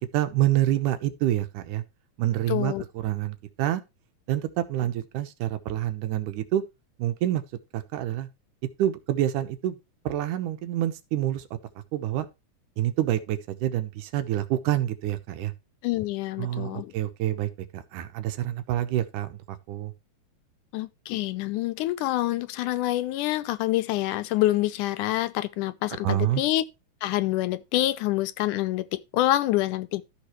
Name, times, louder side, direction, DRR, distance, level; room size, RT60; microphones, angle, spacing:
voice 1, 0.0-1.8 2.2-3.8 4.3-6.6 7.0-7.4 7.7-8.3 8.8-9.8 10.1-11.5 11.9-12.3 12.8-15.5 16.4-19.9 26.0-26.4, right 13 dB, 85° right, 2.5 m, -27 dB
voice 2, 2.5-2.8 15.8-16.9 20.7-26.6 27.0-30.0, left 15 dB, 85° left, 2.3 m, -26 dB
13.0 x 6.6 x 3.1 m
omnidirectional pair, 3.5 m